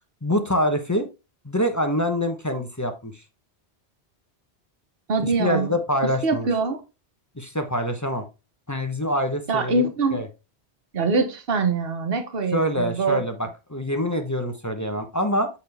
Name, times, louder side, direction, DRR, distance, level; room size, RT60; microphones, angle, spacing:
voice 1, 0.2-1.1 1.4-3.2 5.2-6.5 7.4-8.2 8.7-9.8 10.1-10.3 12.5-15.5, equal, 15° left, 0.9 m, -25 dB
voice 2, 5.1-5.7 6.2-6.8 9.5-10.2 10.9-13.2, right 4 dB, 60° right, 1.4 m, -23 dB
8.2 x 4.5 x 3.4 m
omnidirectional pair, 1.1 m